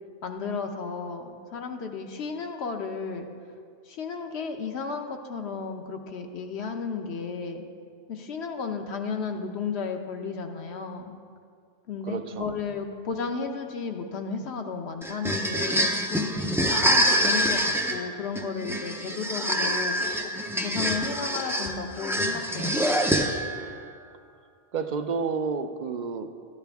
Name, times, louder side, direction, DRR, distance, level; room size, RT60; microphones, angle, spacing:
voice 1, 0.2-3.3 3.9-7.7 8.1-11.1 11.9-16.3 16.6-19.9 20.2-20.3 20.6-22.9, left 5 dB, 65° left, 4 dB, 1.0 m, -33 dB
voice 2, 12.1-12.5 24.7-26.3, right 5 dB, 55° right, 8 dB, 0.5 m, -30 dB
sound 1, 15.0-23.6, equal, 5° right, 0.3 m, -26 dB
13.5 x 10.5 x 3.5 m, 2.2 s
omnidirectional pair, 1.2 m